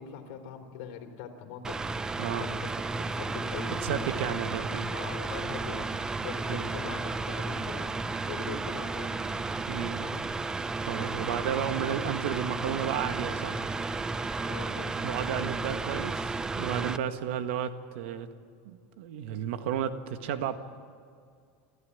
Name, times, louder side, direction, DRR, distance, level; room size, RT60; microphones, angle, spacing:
voice 1, 0.0-1.8 2.4-2.7 3.0-5.9 6.2-9.2 10.0-10.2 11.2-11.3 14.5-15.0, left 8 dB, 65° left, 4 dB, 4.0 m, -42 dB
Mechanical fan, 1.6-17.0, right 3 dB, 10° right, 0.5 m, -33 dB
voice 2, 2.2-2.6 3.8-4.9 6.5-6.7 9.7-10.0 10.8-13.6 15.0-18.3 18.7-20.6, right 9 dB, 75° right, 9 dB, 1.6 m, -33 dB
27.5 x 14.0 x 10.0 m, 2.2 s
supercardioid pair, 160°, 6 cm